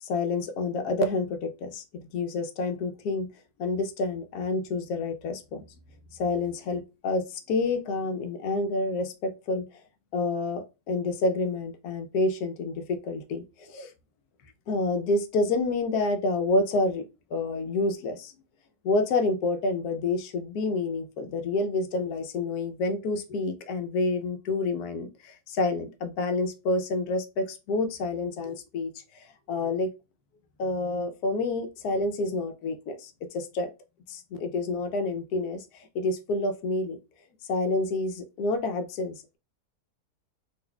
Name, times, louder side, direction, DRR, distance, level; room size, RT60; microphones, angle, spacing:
voice 1, 0.0-3.3 3.6-5.6 6.2-9.7 10.1-13.9 14.7-17.0 17.3-18.3 18.8-28.9 29.1-29.9 30.6-33.7 34.1-37.0 37.5-39.4, left 3 dB, 85° left, 1.2 m, -28 dB
4.0 x 2.8 x 2.2 m
omnidirectional pair, 1.6 m